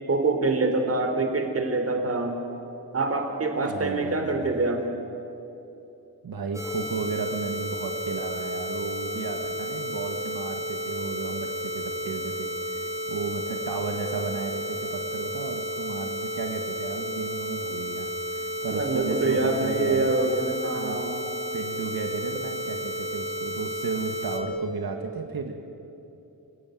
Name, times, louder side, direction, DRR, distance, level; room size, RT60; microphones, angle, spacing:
voice 1, 0.1-2.4 2.9-4.9 18.7-21.1, right 3 dB, 35° right, 5 dB, 3.4 m, -25 dB
voice 2, 3.6-4.4 6.2-20.1 20.7-21.0 21.5-25.7, right 4 dB, 65° right, 4 dB, 1.9 m, -34 dB
sound 1, 6.5-24.4, equal, 5° right, 2.5 m, -32 dB
30.0 x 16.5 x 9.4 m, 2.9 s
wide cardioid pair, 140°, 38 cm